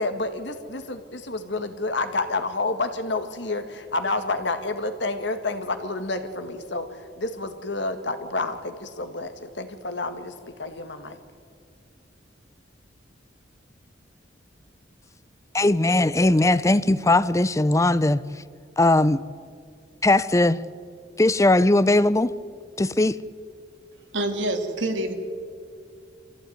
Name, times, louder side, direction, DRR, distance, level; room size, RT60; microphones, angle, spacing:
voice 1, 0.0-6.9 7.2-11.2, left 2 dB, 70° left, 1.9 m, -29 dB
voice 2, 15.5-18.2 18.8-19.2 20.0-20.6 21.2-22.3 22.8-23.2, left 2 dB, 15° left, 0.5 m, -19 dB
voice 3, 24.1-25.1, right 1 dB, 85° right, 2.5 m, -26 dB
24.0 x 15.5 x 9.4 m
head